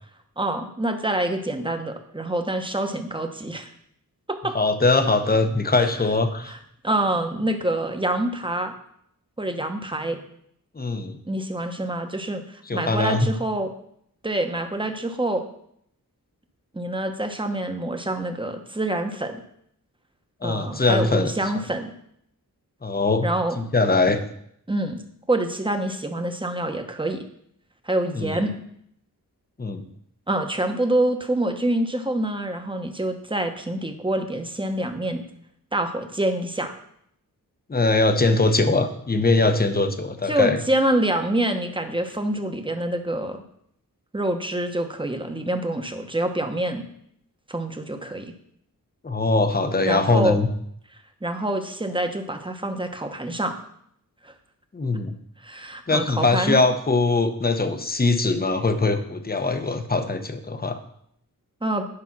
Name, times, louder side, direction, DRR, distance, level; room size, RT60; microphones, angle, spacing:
voice 1, 0.4-3.7 4.3-4.5 5.8-5.9 6.5-6.6 6.8-8.7 9.4-10.2 11.2-13.7 14.2-15.5 16.7-19.4 20.4-21.9 23.2-23.7 24.7-25.0 25.3-27.2 27.8-28.5 30.3-35.2 35.7-36.7 40.3-43.4 44.1-46.8 47.5-48.3 49.8-50.4 51.2-53.5 54.2-54.3 55.4-56.6 61.6-61.9, right 1 dB, 15° right, 6 dB, 1.1 m, -26 dB
voice 2, 4.5-6.5 10.8-11.2 12.7-13.3 20.4-21.3 22.8-23.3 23.6-24.2 28.1-28.4 29.6-29.8 37.7-40.6 49.0-50.5 54.7-55.1 55.9-60.8, left 3 dB, 25° left, 8 dB, 0.9 m, -21 dB
9.9 x 5.2 x 6.0 m, 0.70 s
wide cardioid pair, 100°, 35 cm